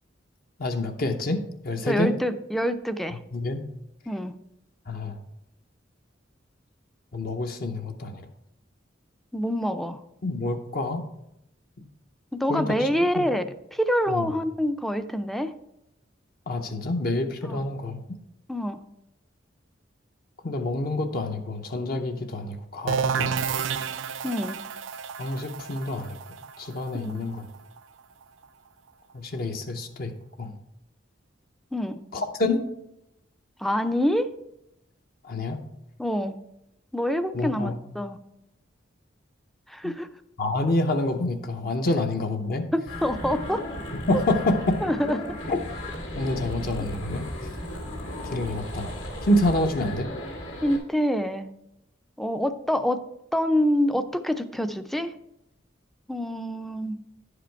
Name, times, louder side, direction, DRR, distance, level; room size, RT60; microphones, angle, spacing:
voice 1, 0.6-2.1 3.3-3.6 4.9-5.2 7.1-8.2 10.2-11.0 12.5-12.9 13.2-13.3 14.1-14.2 16.5-18.0 20.4-23.5 25.2-26.2 26.6-27.4 29.1-30.1 30.4-30.6 32.1-32.6 35.2-35.6 37.3-37.8 39.8-39.9 40.4-42.7 44.1-44.8 45.5-45.6 46.2-47.3 48.3-48.9 49.2-50.1, left 2 dB, 50° left, 5 dB, 0.7 m, -27 dB
voice 2, 1.9-3.2 4.1-4.3 9.3-10.0 12.3-15.5 17.4-17.7 18.5-18.8 24.2-24.6 26.9-27.2 31.7-32.0 33.6-34.3 36.0-36.4 36.9-38.2 39.7-40.1 42.7-43.6 44.8-45.2 50.6-51.5 52.2-53.0 53.3-55.1 56.1-57.0, equal, ahead, 10 dB, 0.4 m, -26 dB
sound 1, 22.9-28.4, right 6 dB, 85° right, 0.4 m, -31 dB
sound 2, 42.9-50.8, left 1 dB, 90° left, 2.2 m, -35 dB
10.5 x 5.0 x 4.5 m, 0.84 s
head